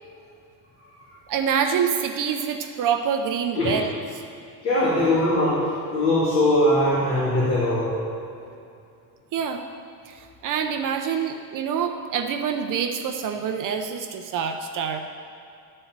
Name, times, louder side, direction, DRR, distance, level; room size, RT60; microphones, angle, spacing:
voice 1, 1.3-3.9 9.3-9.6 10.4-15.0, right 7 dB, 40° right, 5 dB, 0.7 m, -26 dB
voice 2, 4.6-7.9, left 1 dB, 30° left, -10 dB, 3.0 m, -21 dB
13.0 x 4.4 x 8.1 m, 2.5 s
cardioid pair, 145°, 46 cm